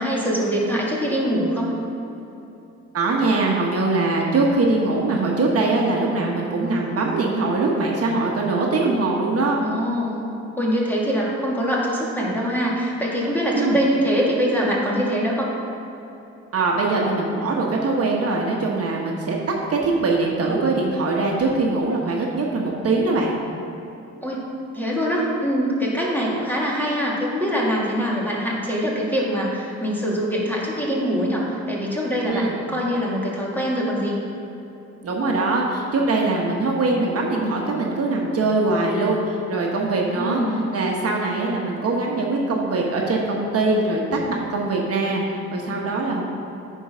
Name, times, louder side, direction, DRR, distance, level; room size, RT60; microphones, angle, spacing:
voice 1, 0.0-1.7 9.6-10.2 10.6-15.5 24.2-24.4 24.7-34.2 40.2-40.6, equal, 5° left, -4 dB, 2.0 m, -23 dB
voice 2, 2.9-9.6 13.5-13.8 16.5-19.4 19.7-23.3 26.0-26.2 32.3-32.5 35.0-40.4 40.7-44.0 44.3-46.2, right 3 dB, 50° right, -1 dB, 1.2 m, -22 dB
9.2 x 4.6 x 5.6 m, 2.9 s
cardioid pair, 90°, 30 cm